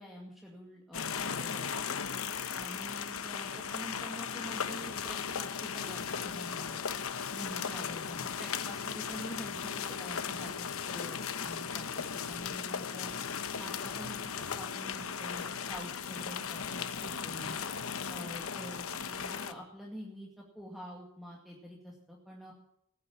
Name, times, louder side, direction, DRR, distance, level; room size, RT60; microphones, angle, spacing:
voice 1, 0.0-2.0 2.5-6.8 7.3-12.0 12.3-13.1 13.6-17.6 18.1-22.5, equal, ahead, -2 dB, 2.2 m, -46 dB
sound 1, 0.9-19.5, left 7 dB, 75° left, 1.0 m, -37 dB
17.5 x 9.9 x 7.2 m, 0.73 s
head